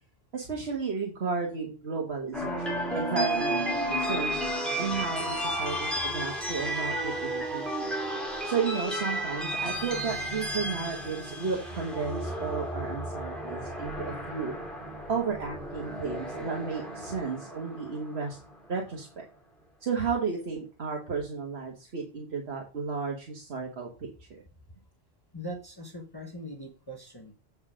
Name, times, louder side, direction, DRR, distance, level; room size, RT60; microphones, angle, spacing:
voice 1, 0.3-4.4 4.8-7.9 8.4-14.5 15.1-18.4 18.7-19.2 19.8-23.9 24.3-24.4, right 5 dB, 75° right, 0 dB, 1.7 m, -33 dB
sound 1, 2.3-18.5, right 1 dB, ahead, 2.4 m, -33 dB
voice 2, 25.3-27.3, equal, 20° left, 2 dB, 1.1 m, -41 dB
8.1 x 4.8 x 5.0 m, 0.35 s
omnidirectional pair, 1.1 m